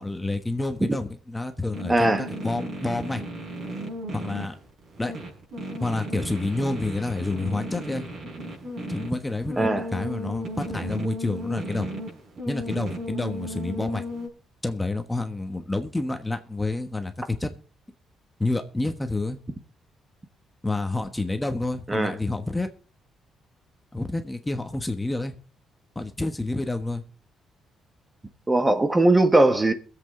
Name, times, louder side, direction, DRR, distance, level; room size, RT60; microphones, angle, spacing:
voice 1, 0.0-3.2 4.1-4.5 5.0-5.1 5.8-8.0 8.9-11.9 12.5-14.0 14.6-17.5 18.4-19.4 20.6-22.7 23.9-25.3 25.9-27.0, left 2 dB, 15° left, 1.3 m, -29 dB
sound 1, 1.7-14.3, equal, 60° right, 5.4 m, -35 dB
voice 2, 1.9-2.3 9.6-9.9 21.9-22.1 28.5-29.7, right 2 dB, 20° right, 1.4 m, -19 dB
22.0 x 8.0 x 3.8 m
cardioid pair, 90°, 0 cm